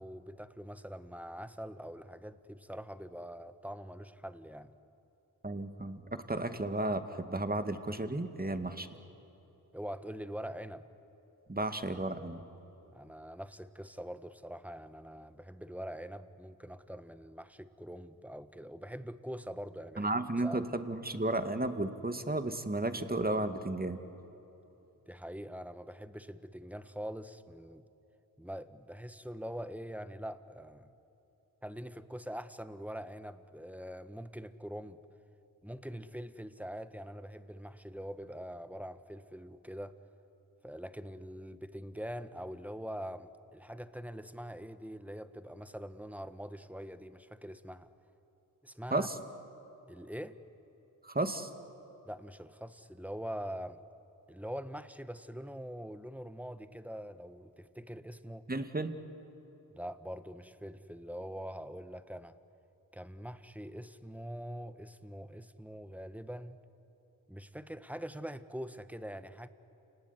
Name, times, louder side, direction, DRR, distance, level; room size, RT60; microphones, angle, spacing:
voice 1, 0.0-4.7 9.7-10.9 12.9-20.1 20.4-20.7 25.1-27.8 28.4-30.9 31.6-35.0 35.6-40.0 40.6-47.9 48.6-49.1 49.9-50.4 52.0-53.8 54.3-58.5 59.7-62.4 62.9-66.6 67.3-69.5, equal, 5° right, 12 dB, 1.4 m, -44 dB
voice 2, 5.4-8.9 11.5-12.4 20.0-24.0 48.9-49.2 51.0-51.5 58.5-59.0, right 2 dB, 25° right, 8 dB, 2.1 m, -33 dB
29.0 x 19.0 x 9.8 m, 3.0 s
supercardioid pair, 40°, 39 cm